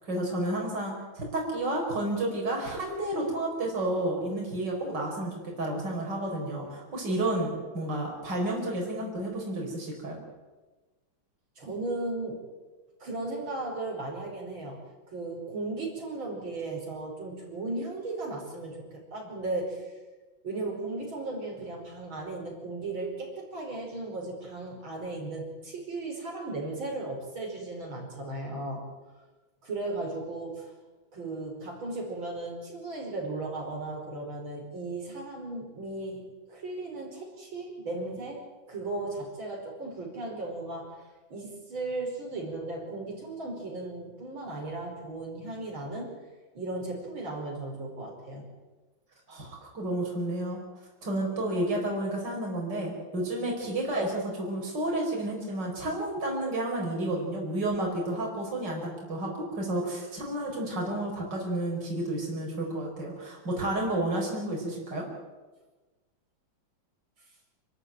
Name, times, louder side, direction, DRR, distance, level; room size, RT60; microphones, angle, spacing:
voice 1, 0.0-10.2 49.3-50.6 51.0-65.1, right 1 dB, 60° right, -1 dB, 5.5 m, -31 dB
voice 2, 11.6-12.4 13.0-14.8 15.1-19.9 20.4-28.8 29.6-30.7 31.1-46.1 46.5-48.5, right 2 dB, 80° right, -1 dB, 5.9 m, -36 dB
28.5 x 13.5 x 9.2 m, 1.2 s
omnidirectional pair, 2.2 m